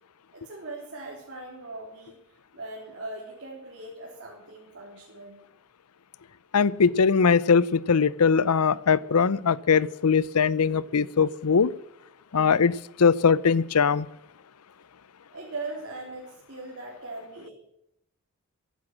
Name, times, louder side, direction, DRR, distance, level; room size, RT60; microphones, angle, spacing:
voice 1, 0.3-5.4 15.3-17.5, right 2 dB, 55° right, 3.6 m, -40 dB
voice 2, 6.5-11.7 12.3-12.7 13.0-14.1, left 5 dB, 80° left, 0.6 m, -21 dB
15.0 x 11.5 x 7.4 m
head